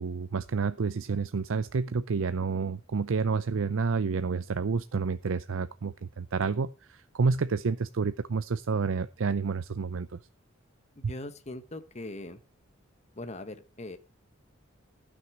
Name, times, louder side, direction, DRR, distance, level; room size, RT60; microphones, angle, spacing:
voice 1, 0.0-10.2 11.0-11.1, right 4 dB, 65° right, 12 dB, 0.5 m, -29 dB
voice 2, 11.0-12.4 13.2-14.0, left 2 dB, 35° left, 9 dB, 1.0 m, -40 dB
14.5 x 6.4 x 6.0 m, 0.34 s
head